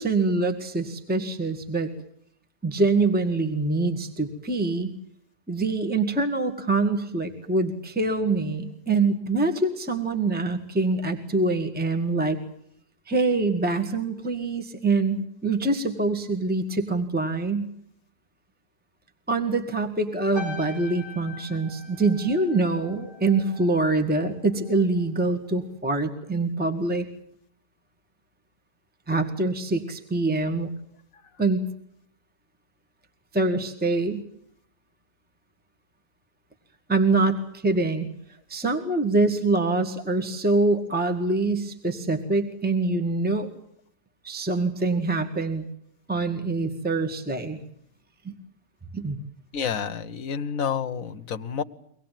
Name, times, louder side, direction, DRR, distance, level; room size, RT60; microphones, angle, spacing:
voice 1, 0.0-1.9 2.6-4.9 5.5-12.4 13.1-17.7 19.3-27.1 29.1-30.7 31.4-31.6 33.3-34.2 36.9-38.1 38.5-43.5 44.2-45.7 46.1-47.6 48.2-48.3 48.9-49.2, right 3 dB, 5° right, 6 dB, 1.8 m, -25 dB
sound 1, 20.3-25.0 25.2-25.6, left 2 dB, 65° right, 8.5 m, -43 dB
voice 2, 49.5-51.6, left 7 dB, 55° left, 9 dB, 1.5 m, -29 dB
24.0 x 19.5 x 9.2 m, 0.69 s
omnidirectional pair, 1.8 m